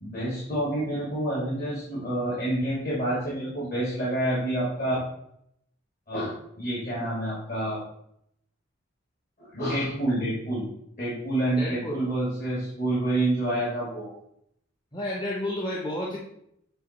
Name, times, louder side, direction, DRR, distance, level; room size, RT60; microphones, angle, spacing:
voice 1, 0.0-5.0 6.1-7.8 9.4-10.6 11.0-14.1, right 1 dB, 50° left, -7 dB, 2.3 m, -28 dB
voice 2, 11.5-12.0 14.9-16.2, left 1 dB, 25° left, -3 dB, 0.9 m, -31 dB
8.3 x 2.9 x 4.3 m, 0.73 s
head